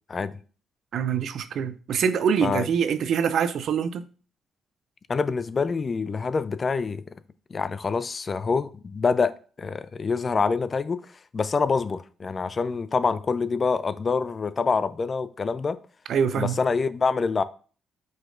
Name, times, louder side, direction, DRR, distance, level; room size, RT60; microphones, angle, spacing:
voice 1, 0.9-4.0 16.1-16.6, right 7 dB, 65° right, 0.4 m, -24 dB
voice 2, 5.1-7.2 7.5-15.8 16.4-17.4, left 4 dB, 40° left, 0.4 m, -26 dB
4.9 x 3.9 x 2.5 m
hypercardioid pair, 50°, 0 cm